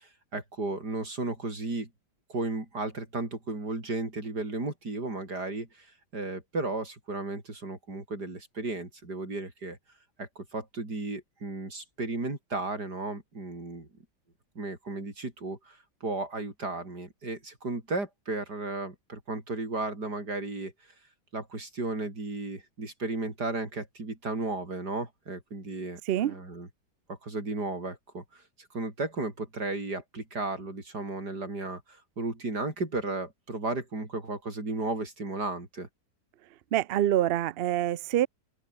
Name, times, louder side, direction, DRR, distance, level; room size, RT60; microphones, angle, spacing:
voice 1, 0.0-1.9 2.3-9.8 10.2-13.9 14.6-20.7 21.3-26.7 27.1-35.9, right 2 dB, 70° right, 6.3 m, -34 dB
voice 2, 36.7-38.3, right 12 dB, 90° right, 0.5 m, -26 dB
open air
omnidirectional pair, 1.8 m